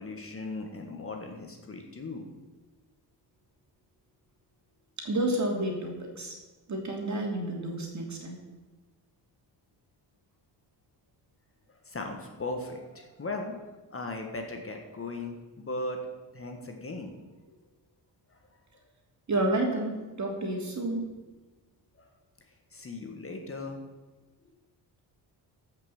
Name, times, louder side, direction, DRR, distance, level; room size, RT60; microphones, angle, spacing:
voice 1, 0.0-2.3 11.7-13.6 13.9-16.0 16.3-17.4 18.3-18.4 22.0-22.1 22.7-23.8, left 2 dB, 30° left, 3 dB, 1.6 m, -38 dB
voice 2, 5.0-6.4 6.7-8.4 19.3-21.1, right 1 dB, 40° right, 1 dB, 2.9 m, -30 dB
14.0 x 5.9 x 7.1 m, 1.2 s
cardioid pair, 115°, 43 cm